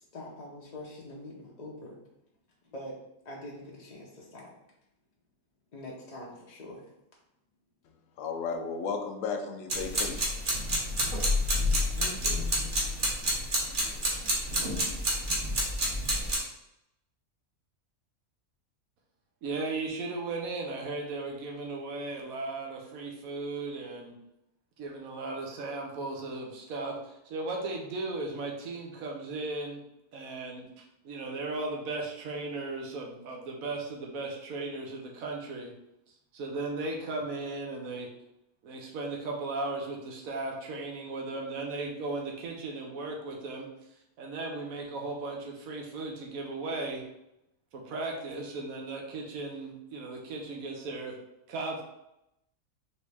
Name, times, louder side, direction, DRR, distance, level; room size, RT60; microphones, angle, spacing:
voice 1, 0.1-2.0 2.7-2.9 3.2-4.5 5.7-6.8 12.0-12.5, left 1 dB, 40° left, -3 dB, 0.6 m, -44 dB
voice 2, 8.2-10.3, left 5 dB, 70° left, 5 dB, 1.0 m, -34 dB
sound 1, 9.7-16.4, equal, 40° right, 1.0 m, -29 dB
voice 3, 19.4-24.1 24.8-29.8 30.1-30.7 31.0-35.7 36.3-38.1 38.6-43.7 44.2-47.0 47.7-51.2 51.5-51.8, right 3 dB, 80° right, 0 dB, 1.3 m, -36 dB
4.1 x 3.1 x 3.4 m, 0.84 s
omnidirectional pair, 1.5 m